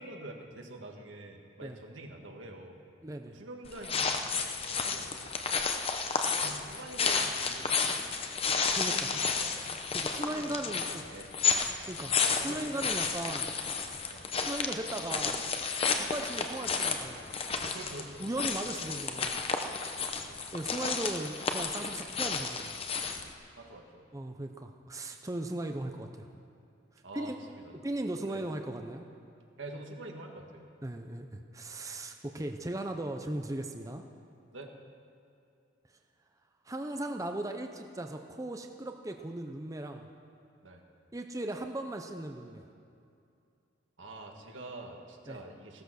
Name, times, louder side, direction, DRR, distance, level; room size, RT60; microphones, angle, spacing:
voice 1, 0.0-2.8 3.3-5.3 6.2-7.8 8.8-9.7 10.2-11.3 12.4-12.9 14.1-14.3 17.7-18.2 20.0-20.4 23.6-24.1 27.0-27.8 28.2-28.4 29.6-30.7 34.5-34.7 40.6-40.8 44.0-45.8, right 1 dB, 80° right, 2 dB, 1.8 m, -46 dB
voice 2, 3.0-3.4 8.7-9.1 9.9-11.0 11.9-12.1 12.4-13.5 14.5-15.5 16.0-17.3 18.2-19.4 20.5-22.7 24.1-26.3 27.1-27.4 27.8-29.0 30.8-34.0 36.7-40.0 41.1-42.6 45.3-45.4, right 1 dB, 15° right, 5 dB, 0.6 m, -37 dB
sound 1, 3.7-23.3, left 5 dB, 30° left, 0.8 m, -32 dB
16.0 x 13.5 x 6.4 m, 2.5 s
head